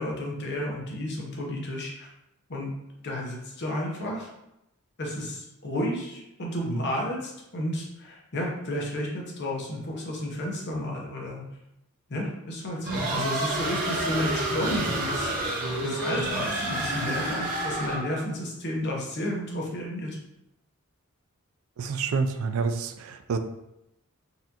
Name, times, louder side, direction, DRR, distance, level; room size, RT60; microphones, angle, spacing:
voice 1, 0.0-2.1 2.5-2.7 3.0-4.3 5.0-11.4 12.1-20.2, left 1 dB, 55° left, -2 dB, 0.8 m, -32 dB
sound 1, 12.8-18.2, right 2 dB, 45° right, 0.9 m, -29 dB
voice 2, 21.8-23.4, right 4 dB, 70° right, 9 dB, 0.3 m, -28 dB
4.0 x 2.5 x 2.8 m, 0.86 s
head